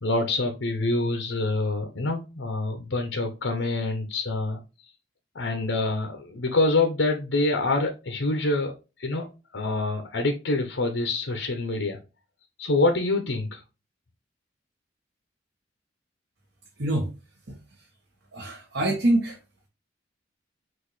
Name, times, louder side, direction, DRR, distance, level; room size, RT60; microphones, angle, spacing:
voice 1, 0.0-4.6 5.3-9.3 9.5-12.0 12.6-13.6, left 2 dB, 90° left, 0.8 m, -26 dB
voice 2, 16.8-17.1 17.5-17.6 18.3-19.4, right 1 dB, 65° right, 1.3 m, -25 dB
6.1 x 2.6 x 3.1 m
head